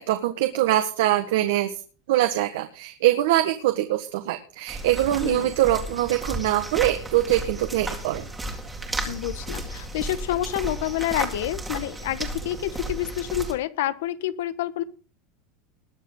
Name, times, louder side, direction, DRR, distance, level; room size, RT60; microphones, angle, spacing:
voice 1, 0.0-1.7 2.1-8.3, right 14 dB, 70° right, 6 dB, 1.7 m, -23 dB
sound 1, 4.7-13.5, right 2 dB, 5° right, 2.2 m, -33 dB
voice 2, 9.1-14.8, left 13 dB, 75° left, 14 dB, 1.3 m, -28 dB
21.0 x 7.5 x 3.9 m, 0.38 s
supercardioid pair, 175°, 0 cm